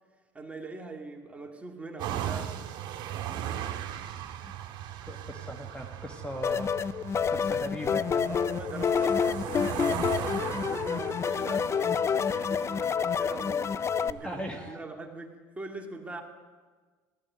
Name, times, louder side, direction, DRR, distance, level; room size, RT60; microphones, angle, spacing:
voice 1, 0.3-2.6 8.2-16.2, right 2 dB, 15° right, 1 dB, 2.3 m, -42 dB
sound 1, 2.0-14.7, right 10 dB, 60° right, 1.8 m, -38 dB
voice 2, 4.8-8.2 14.2-14.8, equal, 10° left, 2 dB, 1.6 m, -39 dB
sound 2, 6.4-14.1, left 7 dB, 30° left, 0.4 m, -28 dB
16.5 x 12.5 x 6.2 m, 1.4 s
supercardioid pair, 85°, 9 cm